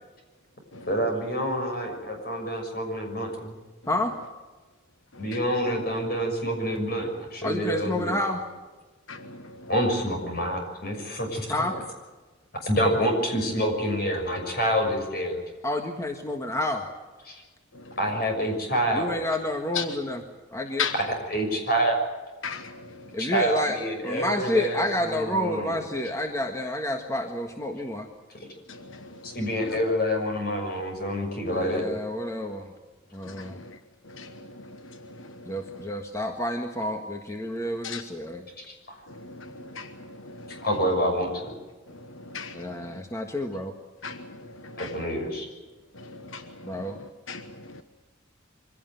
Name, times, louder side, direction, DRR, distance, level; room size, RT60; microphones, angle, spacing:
voice 1, 0.9-3.5 5.2-8.2 9.7-11.7 12.6-15.3 17.3-17.4 18.0-19.0 21.3-21.9 23.2-25.7 29.2-31.8 38.6-39.0 40.6-41.5 44.8-45.5, equal, 50° left, 6.4 m, -27 dB
voice 2, 7.4-8.4 11.5-11.8 15.6-16.8 18.9-20.2 20.5-20.9 23.1-28.1 31.5-32.7 33.1-33.6 35.4-38.4 42.5-43.7 46.6-47.0, left 1 dB, 15° left, 1.6 m, -29 dB
voice 3, 39.2-39.9 40.3-40.6 42.3-42.8 44.0-44.3 44.6-44.9 46.0-46.4 47.3-47.5 47.7-47.8, left 6 dB, 85° left, 1.2 m, -35 dB
24.0 x 17.0 x 9.2 m
head